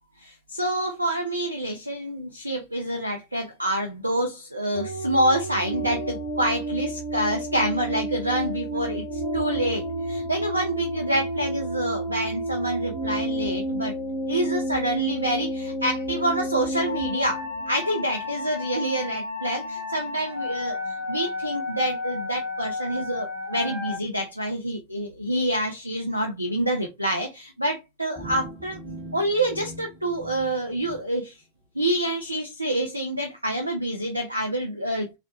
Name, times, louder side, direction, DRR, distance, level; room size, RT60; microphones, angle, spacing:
voice 1, 0.2-13.9 14.3-28.8 29.1-31.4 31.7-35.1, right 1 dB, 85° right, 0.4 m, -27 dB
sound 1, 4.7-24.0, equal, 50° right, 1.1 m, -31 dB
sound 2, 28.2-31.0, right 1 dB, 20° right, 1.1 m, -41 dB
3.7 x 2.0 x 2.6 m
figure-of-eight pair, 90°, 0 cm